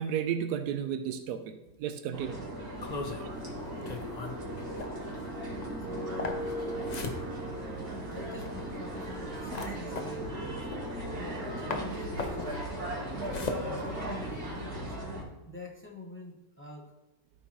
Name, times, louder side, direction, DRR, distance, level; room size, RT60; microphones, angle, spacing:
voice 1, 0.0-2.6 3.2-3.4 15.4-15.5, right 8 dB, 90° right, 8 dB, 1.1 m, -34 dB
sound 1, 2.1-15.2, right 1 dB, 75° right, 2.1 m, -37 dB
sound 2, 2.8-11.4 11.7-14.6, left 4 dB, 50° left, 0.5 m, -40 dB
voice 2, 2.9-3.2 5.9-6.4 8.0-10.7 11.1-15.0 15.5-16.9, left 2 dB, 10° left, -1 dB, 0.8 m, -46 dB
13.0 x 4.5 x 3.0 m, 0.97 s
omnidirectional pair, 1.6 m